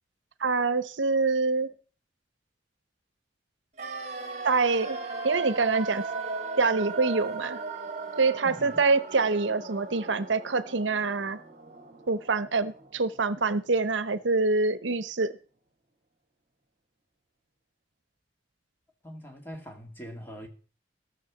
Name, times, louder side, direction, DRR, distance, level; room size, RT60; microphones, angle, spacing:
voice 1, 0.4-1.7 4.4-5.0 5.2-6.0 6.6-7.6 8.2-11.4 12.1-15.4, right 4 dB, 85° right, 15 dB, 0.8 m, -25 dB
sound 1, 3.8-13.7 14.0-14.1, right 3 dB, 40° right, 1.5 m, -37 dB
voice 2, 8.4-8.8 19.0-20.5, equal, 10° left, 3 dB, 2.0 m, -42 dB
15.0 x 6.5 x 7.2 m, 0.40 s
head